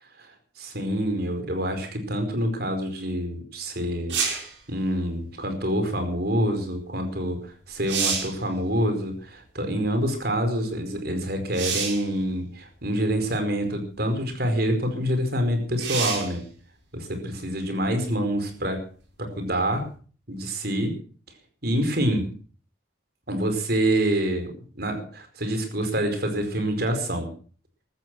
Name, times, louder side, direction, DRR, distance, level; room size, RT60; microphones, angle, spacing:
voice 1, 0.2-4.2 4.7-16.4 16.9-18.8 19.2-19.9 20.3-20.9 21.6-22.3 23.3-27.3, right 1 dB, 55° right, 6 dB, 4.8 m, -26 dB
sound 1, 4.1-4.5 7.2-7.3 7.7-8.4 11.5-12.1 13.1-13.2 15.8-16.4 19.9-20.0, right 6 dB, 75° right, 5.8 m, -27 dB
15.0 x 13.5 x 6.2 m, 0.42 s
head